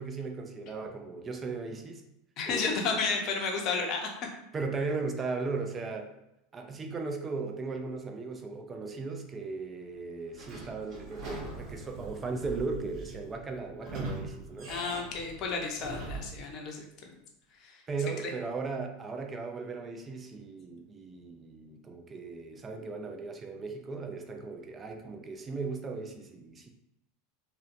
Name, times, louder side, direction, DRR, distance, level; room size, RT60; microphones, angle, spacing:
voice 1, 0.0-2.1 2.5-3.0 4.5-6.1 6.5-14.7 17.9-26.7, right 4 dB, 25° right, 4 dB, 0.4 m, -37 dB
voice 2, 2.4-4.1 14.7-16.8 17.6-17.8, left 4 dB, 50° left, 1 dB, 0.6 m, -32 dB
Sliding door / Squeak, 10.3-16.4, right 2 dB, 50° right, 0.8 m, -42 dB
2.6 x 2.2 x 2.5 m, 0.84 s
hypercardioid pair, 100°, 0 cm